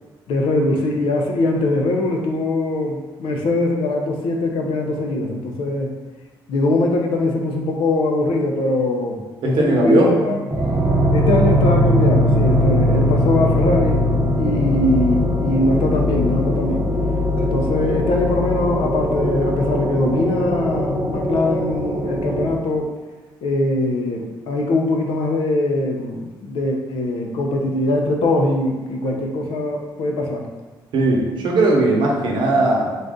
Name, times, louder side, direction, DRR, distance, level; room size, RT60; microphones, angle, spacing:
voice 1, 0.3-5.9 6.5-10.4 11.1-14.0 14.4-16.8 17.4-22.9 23.4-30.5, left 2 dB, 90° left, 1 dB, 0.6 m, -21 dB
voice 2, 9.4-10.2 30.9-33.0, right 2 dB, 65° right, -1 dB, 0.8 m, -18 dB
sound 1, 10.5-22.5, left 1 dB, 25° right, 0.8 m, -20 dB
3.9 x 2.5 x 3.6 m, 1.3 s
cardioid pair, 175°, 9 cm